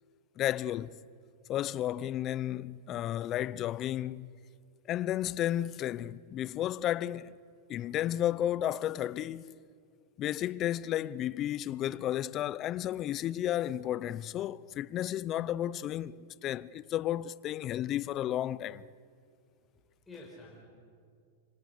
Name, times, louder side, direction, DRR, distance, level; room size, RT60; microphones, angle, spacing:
voice 1, 0.4-1.0 1.5-4.3 4.9-7.4 7.7-9.5 10.2-18.8, left 12 dB, 35° left, 0.6 m, -33 dB
voice 2, 19.5-20.7, left 2 dB, 10° left, 5.0 m, -51 dB
25.5 x 25.5 x 6.7 m
hypercardioid pair, 130°, 0 cm